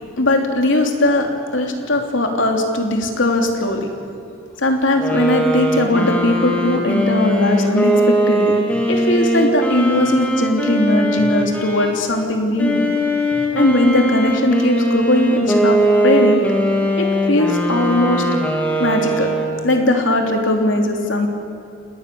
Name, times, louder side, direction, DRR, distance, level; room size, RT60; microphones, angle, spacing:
voice 1, 0.2-3.9 4.6-8.6 8.9-12.8 13.5-15.8 16.0-16.4 17.0-18.2 18.8-19.3 19.6-21.3, left 1 dB, 75° left, 3 dB, 3.3 m, -18 dB
sound 1, 5.0-12.0 12.6-19.7, right 1 dB, 5° left, 2.8 m, -20 dB
28.5 x 20.0 x 7.1 m, 2.8 s
head